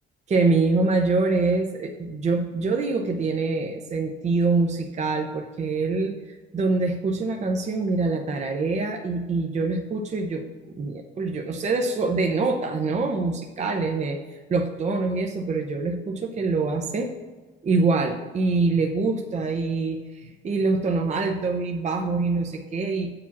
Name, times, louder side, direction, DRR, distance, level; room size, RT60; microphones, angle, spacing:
voice 1, 0.3-10.5 10.7-17.1 17.6-23.1, right 3 dB, 35° right, 4 dB, 0.7 m, -25 dB
7.1 x 4.9 x 7.1 m, 1.3 s
cardioid pair, 115°, 20 cm